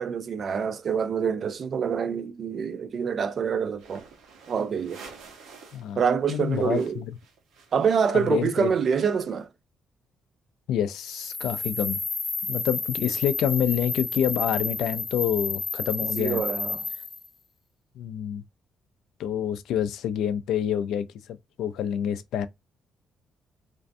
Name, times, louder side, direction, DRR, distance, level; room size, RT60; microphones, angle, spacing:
voice 1, 0.0-4.0 4.5-5.0 6.0-7.0 7.7-9.5 16.2-16.8, right 6 dB, 45° right, 0.3 m, -26 dB
sound 1, 3.7-5.9 6.2-9.4, right 5 dB, 85° right, 0.7 m, -50 dB
voice 2, 6.3-7.2 8.1-8.7 10.7-12.0 12.4-16.4 18.0-18.4 19.2-22.5, left 10 dB, 85° left, 0.3 m, -27 dB
sound 2, 11.0-17.3, left 3 dB, 25° left, 0.5 m, -31 dB
2.5 x 2.1 x 2.5 m
cardioid pair, 145°, 0 cm